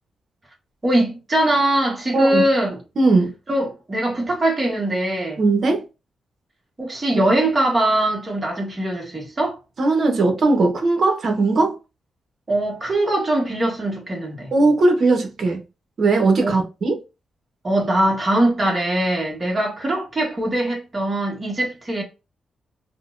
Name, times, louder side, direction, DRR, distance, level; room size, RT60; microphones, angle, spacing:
voice 1, 0.8-2.8 3.5-5.4 6.8-9.6 12.5-14.5 16.4-16.5 17.6-22.0, right 1 dB, 30° right, 1.3 m, -21 dB
voice 2, 2.1-2.5 3.0-3.3 5.4-5.9 9.8-11.8 14.5-15.6 16.0-17.0, right 3 dB, 50° right, 1.0 m, -18 dB
4.2 x 2.2 x 2.5 m
cardioid pair, 115°, 0 cm